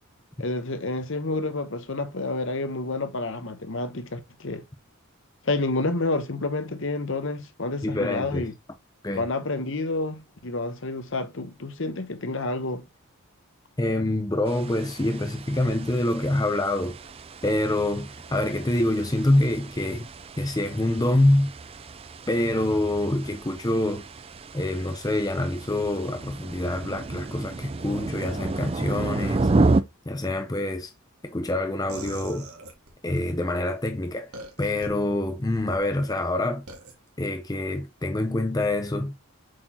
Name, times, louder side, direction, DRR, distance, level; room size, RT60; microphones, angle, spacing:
voice 1, 0.4-4.6 5.4-8.5 9.1-12.9, left 2 dB, 60° left, 1.0 m, -29 dB
voice 2, 7.8-8.5 9.0-9.3 13.8-17.0 17.4-20.1 20.4-21.5 22.3-24.0 24.5-29.5 30.1-30.9 31.2-32.5 33.0-34.3 34.6-36.7 37.2-39.1, left 1 dB, 15° left, 0.6 m, -26 dB
sound 1, 14.5-29.8, right 3 dB, 25° right, 0.4 m, -31 dB
sound 2, 31.9-33.2 34.3-34.9 35.4-35.8 36.7-36.9, right 2 dB, 85° right, 1.9 m, -41 dB
7.7 x 4.2 x 2.9 m
head